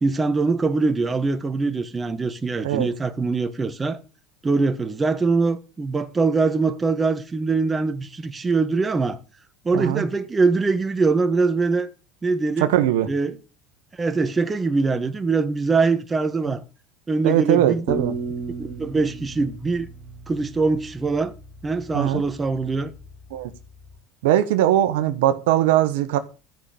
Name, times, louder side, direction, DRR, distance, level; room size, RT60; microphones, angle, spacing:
voice 1, 0.0-4.0 4.4-9.2 9.6-11.9 12.2-12.7 13.1-13.4 14.0-16.6 17.1-17.8 18.6-19.9 20.3-21.3 21.6-22.9, right 4 dB, 20° right, 1.4 m, -23 dB
voice 2, 9.7-10.0 12.6-13.1 17.2-18.2 21.9-22.2 23.3-23.5 24.2-26.2, right 12 dB, 80° right, 1.2 m, -20 dB
sound 1, 17.9-20.8, right 3 dB, ahead, 4.4 m, -33 dB
13.0 x 5.8 x 8.3 m
supercardioid pair, 110°, 0 cm